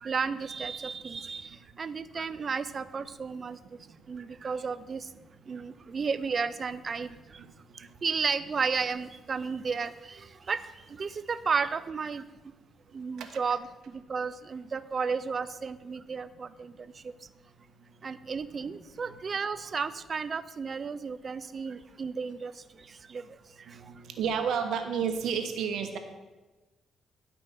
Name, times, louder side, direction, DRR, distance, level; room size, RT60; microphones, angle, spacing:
voice 1, 0.0-3.6 4.1-5.1 5.5-7.4 7.7-12.2 12.9-17.1 18.0-23.3 23.7-23.9, right 5 dB, 40° right, 14 dB, 0.5 m, -33 dB
voice 2, 5.5-5.9 13.2-13.3 23.7-26.0, right 7 dB, 75° right, 6 dB, 1.2 m, -31 dB
10.5 x 6.0 x 5.9 m, 1.2 s
cardioid pair, 90°, 0 cm